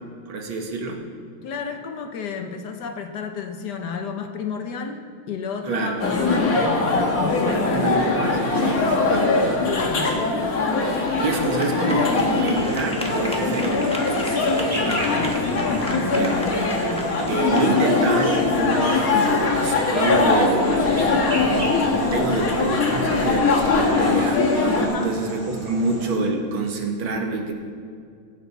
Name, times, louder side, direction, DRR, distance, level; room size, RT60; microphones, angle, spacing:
voice 1, 0.3-1.1 5.7-6.0 7.7-9.3 10.1-10.4 11.2-14.0 16.0-16.5 17.3-21.1 21.4-21.8 22.1-24.5 24.9-27.5, right 3 dB, 80° right, 2 dB, 2.2 m, -26 dB
voice 2, 1.4-8.2 9.6-10.2 14.4-15.4 15.7-16.3 19.1-19.4 24.8-25.1, left 6 dB, 60° left, 5 dB, 1.4 m, -31 dB
sound 1, 6.0-24.9, left 3 dB, 45° left, 1.9 m, -21 dB
sound 2, 9.6-19.5, equal, 5° left, 0.9 m, -37 dB
sound 3, 12.5-26.2, right 1 dB, 20° right, 2.4 m, -35 dB
19.5 x 8.5 x 4.2 m, 2.2 s
omnidirectional pair, 2.2 m